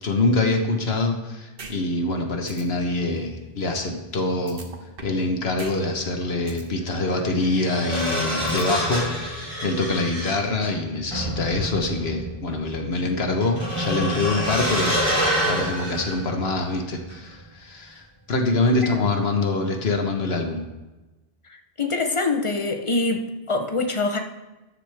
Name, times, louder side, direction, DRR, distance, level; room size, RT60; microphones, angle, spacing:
voice 1, 0.0-4.6 5.0-20.6, left 2 dB, 80° left, 3 dB, 1.4 m, -25 dB
sound 1, 1.6-1.7 2.1-2.2 2.5-2.6 4.5-5.2 5.6-5.7 6.1-6.6 8.5-9.2, right 3 dB, 65° right, 1.4 m, -39 dB
sound 2, 5.8-5.9 7.1-16.8 17.1-17.3, equal, 25° right, 4.3 m, -27 dB
voice 2, 21.8-24.2, left 3 dB, 30° left, 5 dB, 1.0 m, -24 dB
13.5 x 9.9 x 3.5 m, 1.1 s
omnidirectional pair, 1.0 m